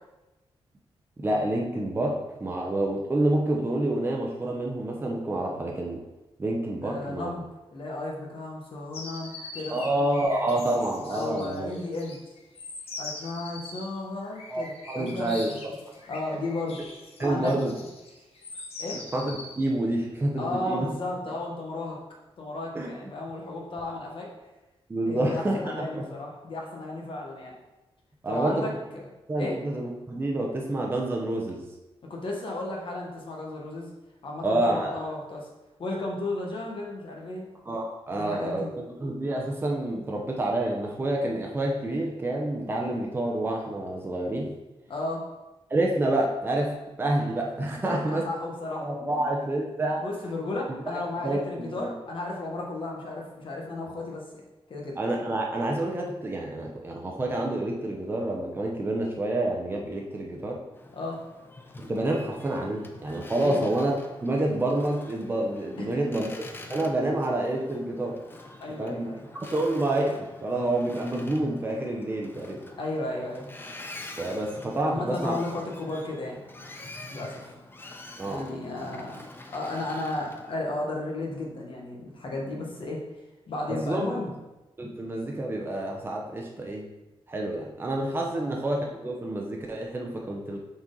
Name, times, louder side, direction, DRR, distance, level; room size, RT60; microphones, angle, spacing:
voice 1, 1.2-6.0 6.4-7.3 9.7-11.7 14.5-15.5 17.2-17.7 19.1-20.9 21.3-21.4 22.7-22.9 24.9-26.1 28.2-28.7 29.3-31.6 34.4-35.0 37.7-38.6 39.0-44.5 45.7-48.3 48.8-50.1 50.9-51.9 55.0-60.6 61.8-66.3 66.7-68.2 68.8-69.1 69.4-72.6 74.2-75.3 78.2-78.4 83.7-84.0 84.8-86.9 87.3-90.6, right 1 dB, 20° right, 0 dB, 0.7 m, -28 dB
voice 2, 6.8-7.4 7.7-9.8 11.1-12.2 13.0-15.6 16.1-16.8 17.2-17.5 18.8-19.0 20.4-22.0 22.4-24.3 25.1-27.5 28.3-29.1 29.4-29.6 32.1-33.9 34.2-35.5 35.8-37.5 38.1-38.7 44.9-45.3 47.8-48.9 49.1-49.3 50.0-54.2 54.7-55.0 60.9-61.2 63.4-63.6 65.8-66.2 68.6-69.3 72.8-73.5 74.8-76.4 77.1-77.5 78.2-79.2 79.5-83.0 83.5-84.3 88.3-88.5, left 2 dB, 60° left, -1 dB, 1.3 m, -34 dB
sound 1, 8.9-19.7, left 2 dB, 90° left, 0.9 m, -42 dB
Boat Water vehicle, 60.7-80.5, left 2 dB, 20° left, 0.5 m, -46 dB
5.9 x 4.2 x 3.8 m, 1.0 s
wide cardioid pair, 145°, 10 cm